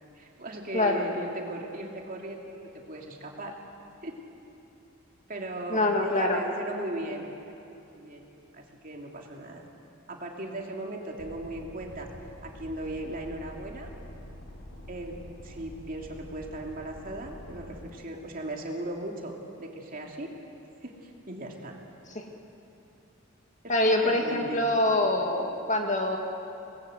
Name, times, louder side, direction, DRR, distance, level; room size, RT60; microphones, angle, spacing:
voice 1, 0.2-3.5 4.0-4.2 5.3-8.2 8.5-9.6 10.1-12.1 12.4-13.9 14.9-15.2 15.4-20.3 20.8-21.8 23.6-24.6, right 1 dB, 40° right, 0 dB, 2.9 m, -38 dB
voice 2, 0.7-1.1 5.7-6.4 22.1-22.3 23.7-26.2, left 1 dB, 35° left, 2 dB, 2.2 m, -25 dB
sound 1, 11.2-17.9, equal, 65° left, 3.4 m, -46 dB
26.0 x 20.0 x 8.1 m, 2.9 s
head